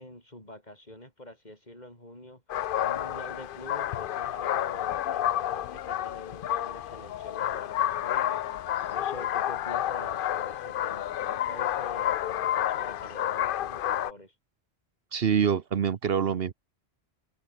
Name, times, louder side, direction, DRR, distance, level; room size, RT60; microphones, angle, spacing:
voice 1, 0.0-2.4 2.8-14.4, left 1 dB, 40° left, 7.1 m, -46 dB
sound 1, 2.5-14.1, left 11 dB, 60° left, 0.7 m, -30 dB
voice 2, 15.1-16.5, right 7 dB, 65° right, 1.1 m, -25 dB
omnidirectional pair, 1.1 m